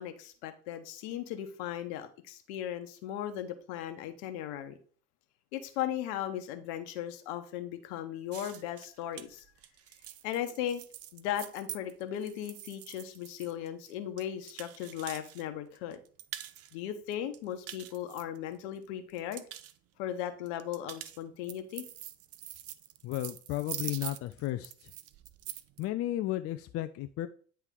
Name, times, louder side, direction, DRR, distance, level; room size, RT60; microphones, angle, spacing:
voice 1, 0.0-4.8 5.5-9.4 10.2-10.8 11.1-16.0 16.7-19.4 20.0-21.8, left 11 dB, 65° left, 8 dB, 1.1 m, -37 dB
sound 1, 8.3-15.4 15.7-16.7 17.1-18.8 19.1-19.7 20.5-25.8, right 12 dB, 40° right, 0.6 m, -44 dB
voice 2, 23.0-24.9 25.8-27.3, left 14 dB, 40° left, 9 dB, 0.5 m, -34 dB
9.7 x 3.3 x 3.7 m, 0.44 s
hypercardioid pair, 65°, 36 cm